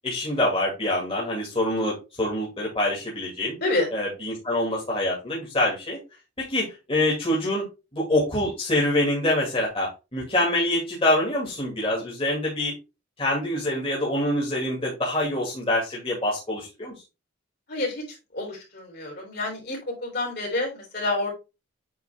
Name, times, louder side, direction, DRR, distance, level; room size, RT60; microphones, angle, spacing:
voice 1, 0.0-3.5 3.9-6.0 6.4-7.6 7.9-12.7 13.2-16.9, left 1 dB, 30° left, -4 dB, 2.3 m, -25 dB
voice 2, 17.7-18.0 18.3-21.3, left 2 dB, 55° left, -1 dB, 3.7 m, -28 dB
8.5 x 3.8 x 3.5 m, 0.27 s
head